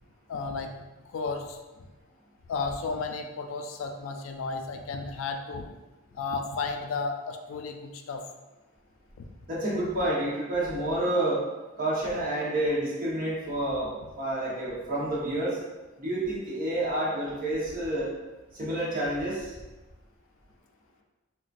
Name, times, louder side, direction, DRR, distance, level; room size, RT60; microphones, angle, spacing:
voice 1, 0.3-0.7 1.1-1.6 2.5-5.7 6.1-8.2, left 4 dB, 75° left, 5 dB, 0.3 m, -33 dB
voice 2, 9.5-11.4 11.8-15.6 16.0-18.1 18.5-19.6, right 1 dB, 45° right, -6 dB, 1.0 m, -29 dB
3.8 x 2.1 x 2.5 m, 1.1 s
head